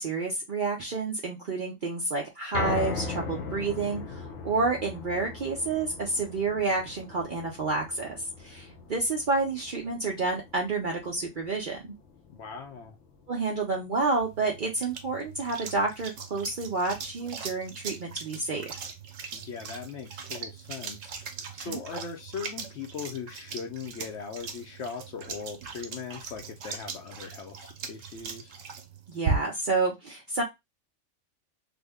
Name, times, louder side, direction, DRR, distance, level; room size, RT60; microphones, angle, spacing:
voice 1, 0.0-11.9 13.3-18.8 21.7-21.8 29.1-30.4, right 3 dB, 50° right, 0.7 m, -29 dB
sound 1, 2.5-14.8 15.2-15.3 15.7-15.8, left 4 dB, 85° left, 1.2 m, -39 dB
voice 2, 12.3-13.0 19.3-21.3 21.5-28.6, left 6 dB, 70° left, 0.8 m, -39 dB
sound 2, 14.2-29.8, right 5 dB, 85° right, 1.1 m, -39 dB
3.4 x 2.1 x 3.4 m
omnidirectional pair, 1.3 m